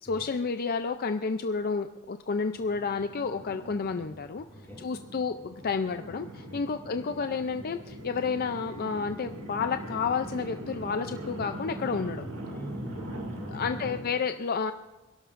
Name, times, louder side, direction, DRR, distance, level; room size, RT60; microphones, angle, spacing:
voice 1, 0.0-4.4 4.8-12.2 13.5-14.7, left 5 dB, 45° left, 8 dB, 0.5 m, -30 dB
sound 1, 2.5-14.0, right 1 dB, 65° right, 2.4 m, -41 dB
voice 2, 4.5-4.8 6.5-6.6 12.4-13.8, right 1 dB, 10° left, -3 dB, 2.3 m, -44 dB
27.5 x 12.0 x 2.6 m, 1.0 s
head